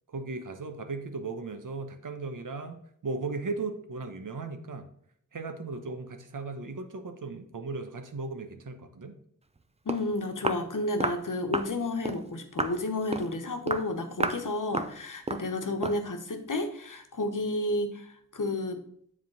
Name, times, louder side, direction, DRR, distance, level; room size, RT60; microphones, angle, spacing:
voice 1, 0.1-4.9 5.3-9.2, right 3 dB, 70° right, 7 dB, 1.0 m, -37 dB
Walk footsteps, 9.6-9.7 9.9-10.1 10.4-10.7 11.0-11.2 11.5-11.7 12.0-12.2 12.6-12.8 13.1-13.3 13.7-13.9 14.2-14.4 14.7-15.0 15.3-15.5 15.8-16.0, right 2 dB, 20° right, 0.6 m, -31 dB
voice 2, 9.8-18.8, left 2 dB, 70° left, 6 dB, 1.1 m, -31 dB
7.4 x 3.7 x 6.2 m, 0.66 s
wide cardioid pair, 55°, 33 cm